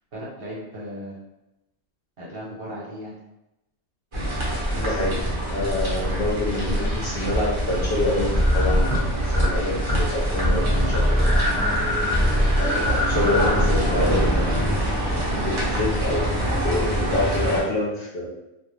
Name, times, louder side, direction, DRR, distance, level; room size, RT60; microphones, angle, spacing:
voice 1, 0.1-1.2 2.2-3.1, equal, 55° right, -6 dB, 1.0 m, -36 dB
sound 1, 4.1-17.6, equal, 30° right, 0.7 m, -25 dB
voice 2, 4.7-5.2 5.5-11.4 12.5-14.5 15.3-18.3, left 2 dB, 55° left, -4 dB, 0.8 m, -27 dB
sound 2, 8.3-9.5 9.8-10.1 10.4-15.2, equal, 15° left, 0.8 m, -23 dB
2.3 x 2.2 x 3.2 m, 0.92 s
omnidirectional pair, 1.3 m